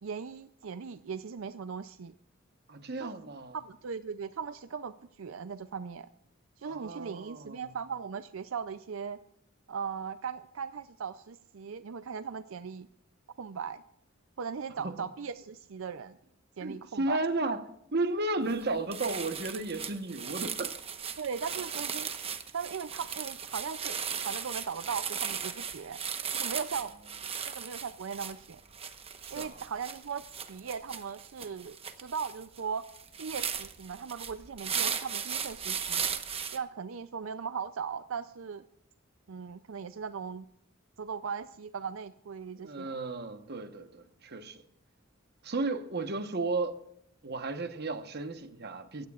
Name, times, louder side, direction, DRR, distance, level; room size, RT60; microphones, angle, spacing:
voice 1, 0.0-2.1 3.0-3.1 3.5-6.1 6.6-9.2 9.7-12.9 13.4-13.8 14.4-16.2 16.6-17.2 21.2-22.1 22.5-24.0 24.3-26.0 26.3-26.9 27.5-28.6 29.3-32.8 33.2-36.1 36.5-38.6 39.3-40.5 41.0-43.0, right 6 dB, 80° right, 0.5 m, -38 dB
voice 2, 2.7-3.6 6.6-7.7 14.8-15.0 16.6-17.6 17.9-20.8 29.2-29.6 42.6-44.6 45.4-46.8 47.2-49.1, right 2 dB, 55° right, 1.2 m, -34 dB
sound 1, 18.5-18.6 18.9-36.6, right 7 dB, 30° right, 1.0 m, -37 dB
25.5 x 16.0 x 2.4 m
head